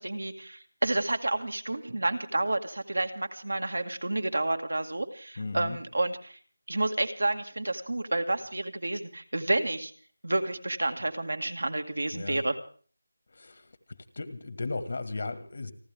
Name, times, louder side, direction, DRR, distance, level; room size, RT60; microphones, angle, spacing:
voice 1, 0.0-6.4 6.7-9.9 10.2-12.6, right 2 dB, 80° right, 6 dB, 2.1 m, -30 dB
voice 2, 5.4-5.8 12.1-12.4 13.4-13.5 14.2-15.7, left 3 dB, 45° left, 11 dB, 1.9 m, -35 dB
29.5 x 12.0 x 3.6 m, 0.44 s
figure-of-eight pair, 175°, 0 cm